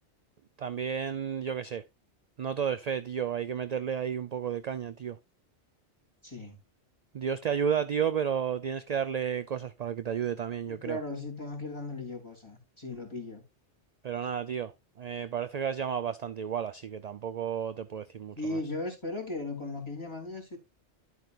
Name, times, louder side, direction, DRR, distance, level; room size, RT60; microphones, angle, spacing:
voice 1, 0.6-1.8 2.4-5.2 7.1-11.0 14.0-14.7 15.0-18.6, right 8 dB, 50° right, 0.5 m, -32 dB
voice 2, 6.2-6.6 10.3-10.4 10.7-13.4 18.4-20.6, left 2 dB, 25° left, 3.3 m, -37 dB
11.0 x 7.9 x 2.4 m
omnidirectional pair, 1.1 m